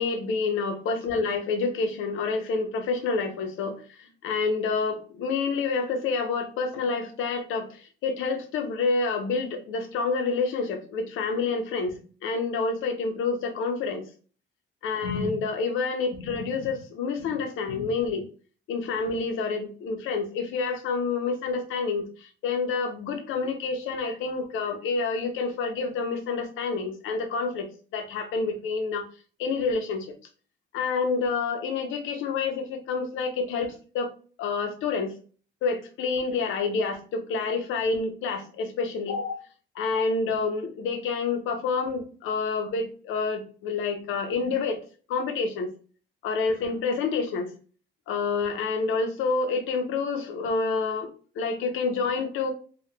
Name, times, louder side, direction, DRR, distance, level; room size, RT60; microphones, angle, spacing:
voice 1, 0.0-14.0 14.8-18.2 18.7-27.7 27.9-29.0 29.4-30.1 30.7-34.1 34.4-35.1 35.6-39.4 39.7-44.8 45.1-45.7 46.2-47.5 48.1-51.1 51.4-52.5, left 4 dB, 85° left, 5 dB, 0.7 m, -28 dB
2.9 x 2.3 x 3.2 m, 0.40 s
cardioid pair, 90°, 20 cm